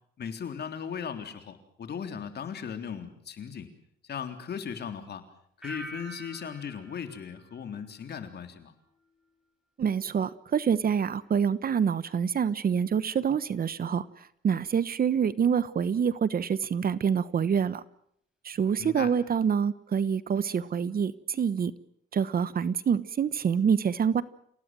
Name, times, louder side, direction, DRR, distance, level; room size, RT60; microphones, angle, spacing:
voice 1, 0.2-3.7 4.0-5.2 5.6-8.7 18.8-19.1, left 7 dB, 55° left, 7 dB, 3.6 m, -37 dB
sound 1, 5.6-8.5 8.8-9.3, equal, 5° right, 7.1 m, -46 dB
voice 2, 9.8-14.0 14.4-17.8 18.4-21.7 22.1-24.2, right 7 dB, 50° right, 17 dB, 1.1 m, -26 dB
28.5 x 18.0 x 7.7 m, 0.68 s
cardioid pair, 90°, 20 cm